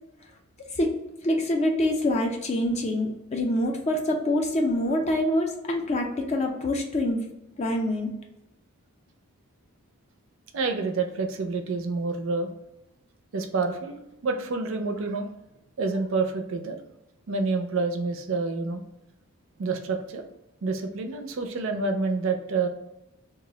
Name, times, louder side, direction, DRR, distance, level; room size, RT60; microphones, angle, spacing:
voice 1, 0.8-7.2 7.6-8.1, left 1 dB, 30° left, 2 dB, 0.4 m, -25 dB
voice 2, 10.5-12.5 13.3-15.4 15.8-16.8 17.3-18.8 19.6-20.2 20.6-22.7, right 4 dB, 60° right, 5 dB, 0.4 m, -28 dB
2.3 x 2.0 x 3.7 m, 0.90 s
head